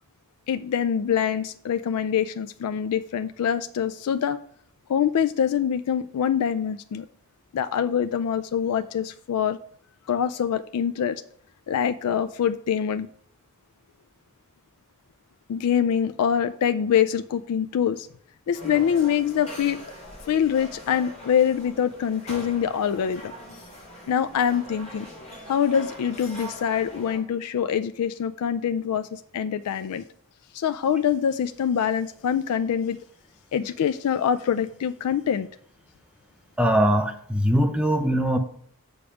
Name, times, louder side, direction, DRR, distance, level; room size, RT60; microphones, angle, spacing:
voice 1, 0.5-4.4 4.9-7.1 7.5-9.6 10.1-11.2 11.7-13.1 15.5-18.1 18.5-19.8 20.3-23.3 24.1-25.1 25.5-30.0 30.5-33.0 33.5-35.5, left 8 dB, 85° left, 0.3 m, -24 dB
sound 1, 18.5-27.2, equal, 30° left, 3.0 m, -42 dB
voice 2, 36.6-38.4, equal, 5° right, 0.6 m, -21 dB
7.1 x 5.1 x 5.0 m
head